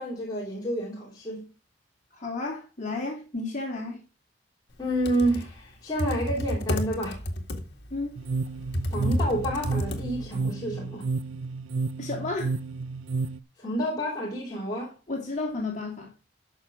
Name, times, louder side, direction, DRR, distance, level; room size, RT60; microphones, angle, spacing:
voice 1, 0.0-1.4 4.8-7.2 8.9-11.0 13.6-14.9, right 1 dB, 20° left, 3.0 m, -29 dB
voice 2, 2.1-4.0 7.9-8.2 12.0-12.6 15.1-16.1, left 3 dB, 35° left, 2.6 m, -32 dB
Computer keyboard, 4.8-10.4, equal, 55° left, 1.9 m, -31 dB
sound 1, 8.2-13.4, right 4 dB, 70° right, 0.5 m, -31 dB
13.0 x 5.9 x 4.8 m
head